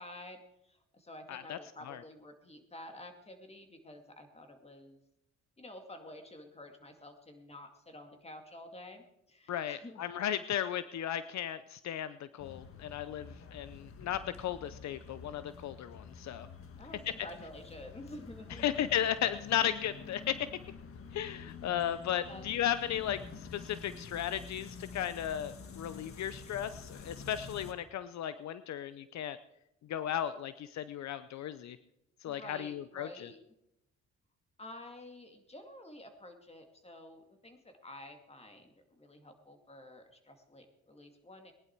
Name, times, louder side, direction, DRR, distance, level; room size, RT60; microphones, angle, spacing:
voice 1, 0.0-5.0 5.6-10.1 16.8-18.7 21.9-22.5 32.2-33.4 34.6-41.5, left 1 dB, 20° left, 6 dB, 2.3 m, -50 dB
voice 2, 9.5-16.5 18.6-20.5 21.1-29.4 29.9-31.8 32.2-33.3, left 10 dB, 65° left, 13 dB, 0.7 m, -35 dB
sound 1, 12.4-27.7, left 5 dB, 50° left, 1.5 m, -49 dB
19.5 x 11.0 x 4.6 m, 0.83 s
cardioid pair, 90°, 30 cm